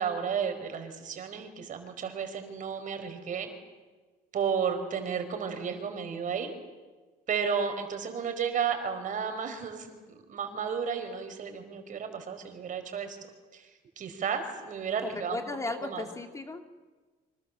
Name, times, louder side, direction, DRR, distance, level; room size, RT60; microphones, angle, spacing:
voice 1, 0.0-3.5 4.3-6.5 7.3-9.9 10.3-13.2 13.5-13.7 14.0-15.4 15.8-16.1, right 6 dB, 50° right, 7 dB, 4.9 m, -32 dB
voice 2, 15.1-16.7, left 2 dB, 20° left, 5 dB, 2.4 m, -36 dB
27.5 x 26.0 x 7.4 m, 1.3 s
cardioid pair, 110°, 17 cm